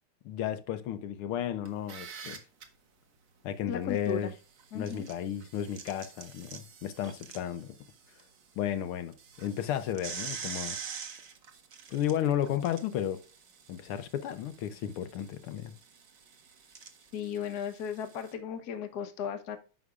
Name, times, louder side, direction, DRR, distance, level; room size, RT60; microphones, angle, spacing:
voice 1, 0.2-2.4 3.4-4.3 4.7-7.7 8.6-10.8 11.9-13.2 13.7-15.7, left 10 dB, 80° left, 1.6 m, -33 dB
sound 1, 1.7-2.6 4.6-8.2 8.6-8.7 9.1-18.3, right 6 dB, 50° right, 1.2 m, -45 dB
voice 2, 3.7-4.3 4.7-5.1 17.1-19.6, left 7 dB, 55° left, 1.3 m, -36 dB
9.6 x 6.3 x 2.4 m
omnidirectional pair, 2.4 m